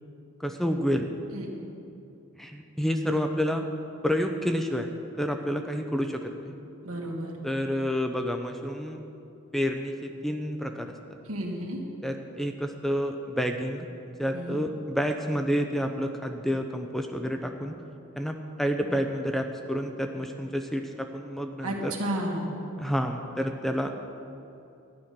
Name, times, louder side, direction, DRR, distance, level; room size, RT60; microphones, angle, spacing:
voice 1, 0.4-1.1 2.4-3.7 4.0-4.9 5.2-6.6 7.4-9.0 9.5-10.9 12.0-17.7 18.2-21.9 22.8-23.9, equal, ahead, 5 dB, 0.6 m, -29 dB
voice 2, 6.8-7.4 11.2-11.8 14.3-14.6 21.6-22.5, right 1 dB, 80° right, -1 dB, 2.1 m, -32 dB
12.5 x 10.5 x 5.9 m, 2.7 s
head